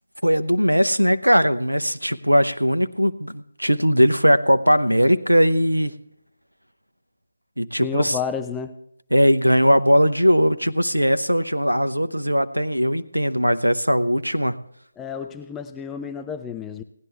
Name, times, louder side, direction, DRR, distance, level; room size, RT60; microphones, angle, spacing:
voice 1, 0.2-5.9 7.6-8.2 9.1-14.6, equal, 85° right, 12 dB, 0.7 m, -19 dB
voice 2, 7.8-8.7 15.0-16.8, left 6 dB, 10° left, 7 dB, 0.5 m, -31 dB
18.0 x 10.5 x 3.3 m, 0.74 s
figure-of-eight pair, 155°, 0 cm